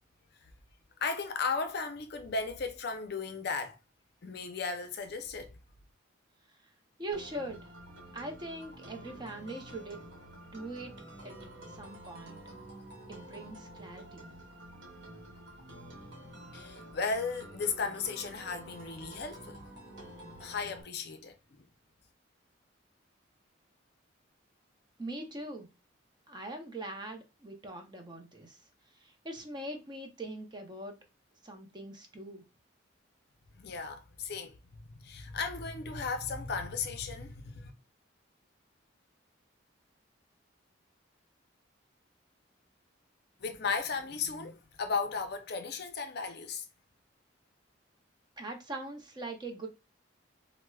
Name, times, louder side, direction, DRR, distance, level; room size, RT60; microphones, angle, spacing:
voice 1, 1.0-3.8 4.2-5.5 16.5-19.7 20.4-21.7 33.5-34.5 35.0-37.7 43.4-46.6, left 4 dB, 50° left, 0.5 m, -35 dB
voice 2, 7.0-7.7 8.1-10.0 10.5-10.9 11.2-11.3 11.7-12.4 13.1-14.2 25.0-25.7 26.3-28.6 28.9-30.9 31.4-32.4 48.4-49.7, right 2 dB, 20° right, 0.5 m, -42 dB
sound 1, 7.1-20.8, right 1 dB, 70° right, 0.9 m, -49 dB
4.4 x 2.0 x 2.2 m
head